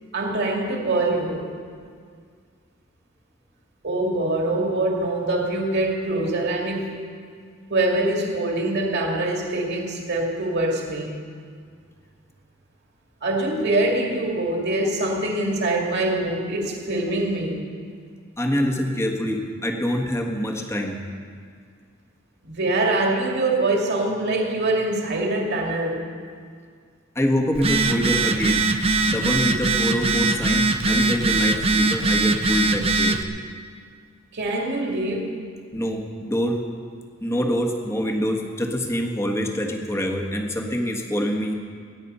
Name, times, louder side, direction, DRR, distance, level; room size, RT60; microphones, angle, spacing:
voice 1, 0.1-1.5 3.8-7.1 7.7-11.2 13.2-17.6 22.4-26.0 34.3-35.4, right 2 dB, 60° right, 0 dB, 2.3 m, -24 dB
voice 2, 18.4-21.0 27.1-28.6 29.1-33.2 35.7-36.6 37.2-41.5, equal, 15° left, 1 dB, 1.5 m, -25 dB
Telephone, 27.5-33.2, right 3 dB, 30° right, 0.7 m, -21 dB
22.0 x 9.5 x 5.6 m, 2.1 s
head